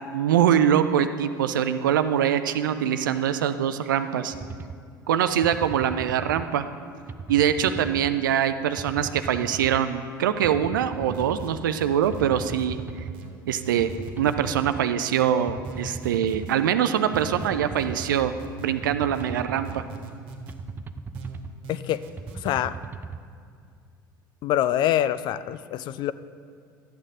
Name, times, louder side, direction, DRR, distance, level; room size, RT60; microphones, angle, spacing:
voice 1, 0.1-4.3 5.1-6.6 7.3-12.8 13.5-13.9 14.2-18.3 18.6-19.8, right 9 dB, 70° right, 10 dB, 0.5 m, -23 dB
sound 1, 4.3-4.8 5.4-6.5 7.1-8.1 8.8-9.8 10.4-11.5 12.1-13.2 13.8-14.8 15.5-16.5 17.1-18.2 18.8-19.9 20.5-21.5 22.2-23.2, right 5 dB, 20° right, 0.4 m, -37 dB
sound 2, 11.1-12.7 13.1-14.6 15.1-16.6 17.1-18.7 19.1-20.6 21.1-22.6, right 2 dB, 50° right, 1.5 m, -41 dB
voice 2, 21.7-22.0 22.4-22.8 24.4-26.1, left 12 dB, 40° left, 15 dB, 0.4 m, -25 dB
12.5 x 8.4 x 3.7 m, 2.2 s
figure-of-eight pair, 70°, 11 cm